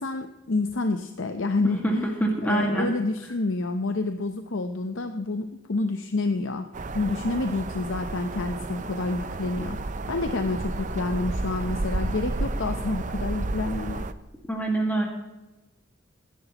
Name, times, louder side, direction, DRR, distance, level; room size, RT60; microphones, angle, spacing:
voice 1, 0.0-6.7 6.9-14.1, left 3 dB, 85° left, 7 dB, 0.8 m, -28 dB
voice 2, 2.2-2.9 14.5-15.1, right 2 dB, 10° left, -1 dB, 1.8 m, -24 dB
sound 1, 6.7-14.1, right 2 dB, 40° right, 0.6 m, -31 dB
20.0 x 11.0 x 3.0 m, 1.1 s
head